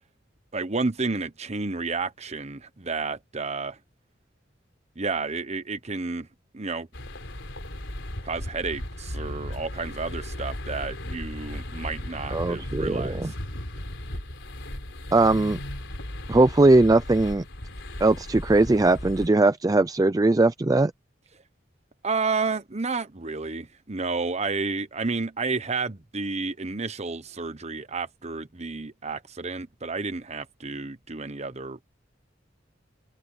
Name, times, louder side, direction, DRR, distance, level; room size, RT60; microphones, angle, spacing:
voice 1, 0.5-3.8 5.0-6.3 6.5-6.9 8.2-13.3 22.0-31.8, right 4 dB, 35° right, 1.1 m, -31 dB
sound 1, 6.9-19.3, left 1 dB, 75° left, 4.0 m, -36 dB
voice 2, 12.3-13.3 15.1-15.6 16.3-17.4 18.0-20.9, right 2 dB, 20° right, 0.4 m, -20 dB
head